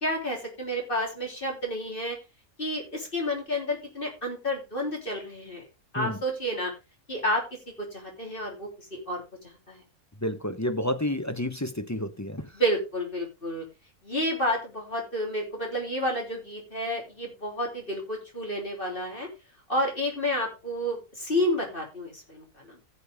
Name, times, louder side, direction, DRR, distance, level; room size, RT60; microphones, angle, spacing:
voice 1, 0.0-2.2 2.6-5.7 5.9-6.7 7.1-7.4 7.8-9.8 12.5-13.7 14.0-19.3 19.7-22.8, equal, 40° left, 3.8 m, -30 dB
voice 2, 10.2-12.5, left 1 dB, 15° left, 0.6 m, -30 dB
15.5 x 6.7 x 3.5 m
omnidirectional pair, 1.5 m